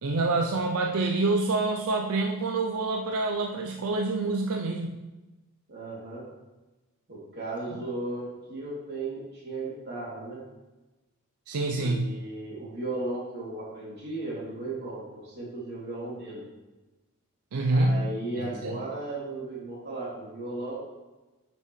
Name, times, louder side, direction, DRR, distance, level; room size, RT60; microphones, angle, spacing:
voice 1, 0.0-5.0 11.5-12.2 17.5-18.0 18.4-18.8, right 2 dB, 75° right, 2 dB, 0.5 m, -27 dB
voice 2, 5.7-6.2 7.1-10.4 11.7-16.5 17.7-20.8, right 2 dB, 50° right, -5 dB, 2.8 m, -36 dB
9.8 x 5.9 x 3.2 m, 1.1 s
head